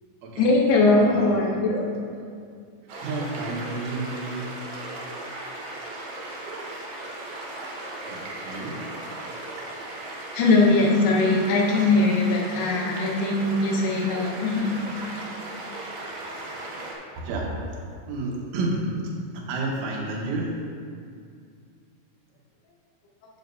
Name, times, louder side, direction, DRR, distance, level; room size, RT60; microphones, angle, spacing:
voice 1, 0.4-1.9 10.3-15.0, left 2 dB, 80° left, 0 dB, 2.4 m, -21 dB
voice 2, 0.9-1.5 3.0-4.6 8.0-8.8 14.6-14.7 15.3-15.4 16.0-16.2 17.2-17.8 18.1-18.9 19.3-20.6, right 2 dB, 85° right, -2 dB, 3.6 m, -31 dB
sound 1, 2.9-16.9, right 2 dB, 70° right, 2.8 m, -37 dB
9.3 x 8.3 x 2.6 m, 2.3 s
omnidirectional pair, 5.4 m